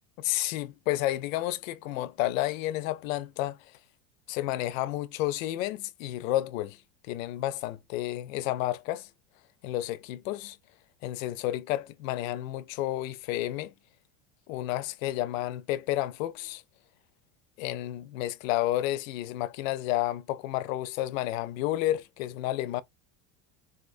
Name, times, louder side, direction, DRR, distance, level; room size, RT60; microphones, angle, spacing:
voice 1, 0.2-3.6 4.3-6.8 7.1-9.1 9.6-10.6 11.0-13.7 14.5-16.6 17.6-22.8, left 14 dB, 75° left, 0.6 m, -31 dB
4.1 x 2.1 x 2.5 m
supercardioid pair, 175°, 41 cm